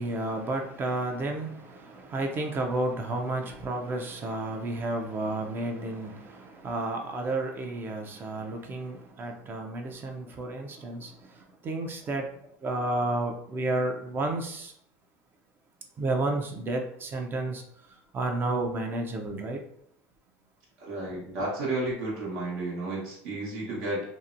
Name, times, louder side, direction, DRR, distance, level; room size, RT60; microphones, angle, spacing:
voice 1, 0.0-12.3 12.6-14.7 16.0-19.6, right 2 dB, 30° right, 3 dB, 0.4 m, -31 dB
voice 2, 20.8-24.0, right 2 dB, 80° right, -6 dB, 1.0 m, -32 dB
2.7 x 2.1 x 2.5 m, 0.70 s
supercardioid pair, 120°, 7 cm